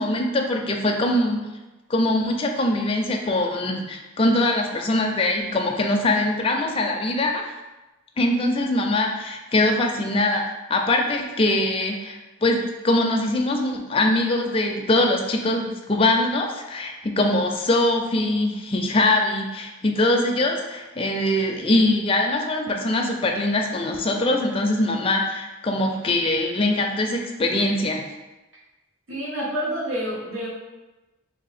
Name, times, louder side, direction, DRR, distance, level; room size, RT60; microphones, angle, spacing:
voice 1, 0.0-1.5 1.9-7.4 8.2-10.4 10.7-28.0, left 1 dB, 25° left, 2 dB, 0.4 m, -22 dB
voice 2, 29.1-30.5, equal, 75° right, -6 dB, 1.4 m, -28 dB
3.5 x 2.7 x 4.1 m, 1.1 s
head